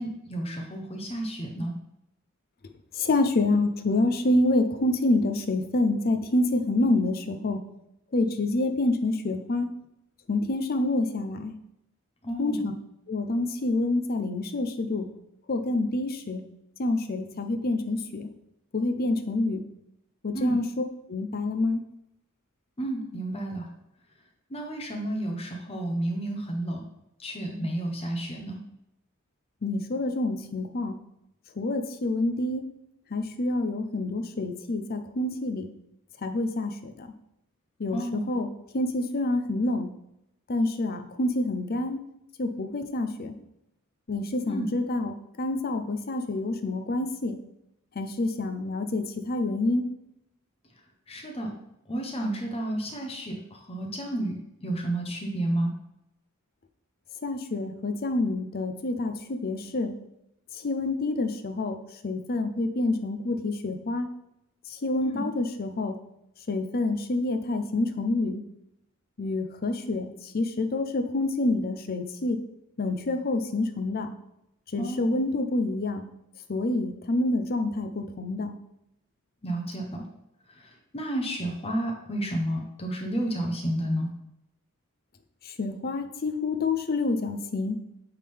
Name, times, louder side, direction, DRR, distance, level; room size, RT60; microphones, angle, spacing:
voice 1, 0.0-1.8 12.2-12.6 20.3-20.6 22.8-23.7 24.5-26.8 27.2-28.6 37.9-38.3 44.5-44.7 51.1-51.5 51.9-55.7 65.0-65.3 74.8-75.2 79.4-80.0 80.5-84.1, right 1 dB, 25° left, 2 dB, 0.9 m, -31 dB
voice 2, 2.9-7.6 8.1-9.7 10.3-11.6 12.4-12.7 13.1-15.1 15.5-16.4 16.8-18.3 18.7-19.6 20.2-20.6 21.1-21.8 29.6-31.0 31.6-32.6 33.1-35.6 36.2-37.1 37.8-39.9 40.5-42.0 42.4-43.3 44.1-47.4 48.0-49.9 57.2-59.9 60.6-61.8 62.0-64.1 64.7-66.0 66.5-68.4 69.2-72.4 72.8-74.1 74.7-76.0 76.5-78.6 85.4-87.8, left 2 dB, 45° left, 7 dB, 0.6 m, -27 dB
8.6 x 3.7 x 3.4 m, 0.82 s
head